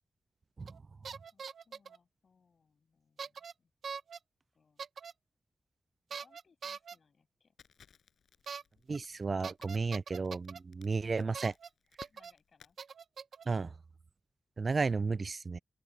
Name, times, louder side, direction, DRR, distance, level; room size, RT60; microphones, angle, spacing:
sound 1, 0.7-0.8 1.0-2.0 3.2-3.5 3.8-4.2 4.8-5.1 6.1-7.0 8.5-8.6 8.9-9.0 9.4-10.6 11.3-11.7 12.0-12.3 12.8-13.5, right 6 dB, 80° right, 0.9 m, -43 dB
voice 1, 1.3-3.7 4.5-4.9 6.1-7.6 12.0-12.8, left 5 dB, 60° left, 6.9 m, -70 dB
Crackle, 7.6-12.7, left 7 dB, 85° left, 6.0 m, -60 dB
voice 2, 8.9-11.5 13.5-13.7 14.6-15.6, right 4 dB, 45° right, 0.3 m, -33 dB
open air
cardioid pair, 85°, 0 cm